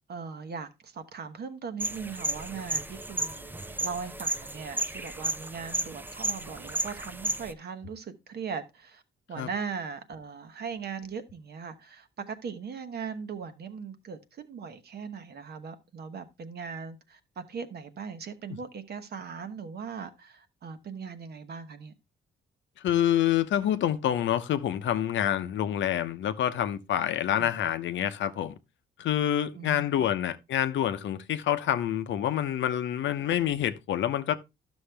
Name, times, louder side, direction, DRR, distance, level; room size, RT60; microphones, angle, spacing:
voice 1, 0.1-9.0 9.3-21.9 27.4-27.5 29.5-30.1, right 6 dB, 55° right, 1.1 m, -39 dB
sound 1, 1.8-7.5, right 2 dB, 10° right, 0.6 m, -33 dB
voice 2, 22.8-28.5 29.0-34.3, left 11 dB, 70° left, 0.7 m, -27 dB
11.5 x 6.3 x 3.3 m
cardioid pair, 90°, 20 cm